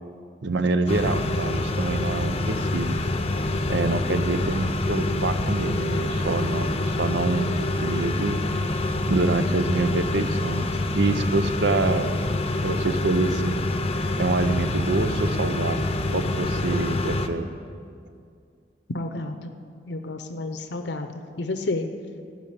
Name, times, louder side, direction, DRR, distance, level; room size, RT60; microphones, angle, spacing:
voice 1, 0.4-3.0 3.7-8.4 9.1-10.7 11.0-12.1 12.6-13.6 14.2-15.8 16.1-17.5, right 2 dB, 80° right, 10 dB, 0.7 m, -26 dB
sound 1, 0.9-17.3, left 2 dB, 35° left, 0.7 m, -26 dB
voice 2, 18.9-19.5 19.9-21.1 21.4-21.9, left 2 dB, 75° left, 7 dB, 0.7 m, -30 dB
14.0 x 6.0 x 8.7 m, 2.3 s
head